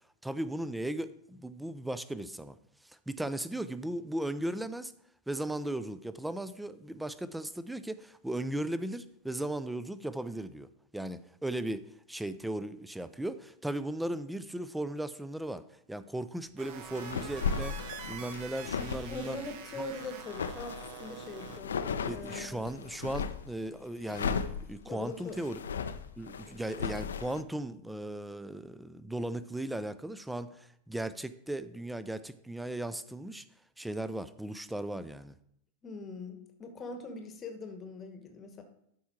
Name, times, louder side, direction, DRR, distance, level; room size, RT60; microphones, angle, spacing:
voice 1, 0.2-2.6 2.8-4.9 5.3-10.7 10.9-11.8 12.1-15.6 15.9-19.4 19.8-19.9 22.0-25.6 26.2-33.4 33.8-35.3, right 1 dB, 5° right, 15 dB, 0.5 m, -37 dB
sound 1, 16.6-21.6, right 8 dB, 45° right, 0.8 m, -46 dB
sound 2, 16.9-23.5 24.0-27.4, left 6 dB, 65° left, 0.5 m, -36 dB
voice 2, 19.1-22.6 24.8-25.4 26.5-26.6 35.8-38.6, left 3 dB, 25° left, 6 dB, 1.2 m, -42 dB
12.5 x 4.6 x 4.4 m, 0.72 s
figure-of-eight pair, 90°, 0 cm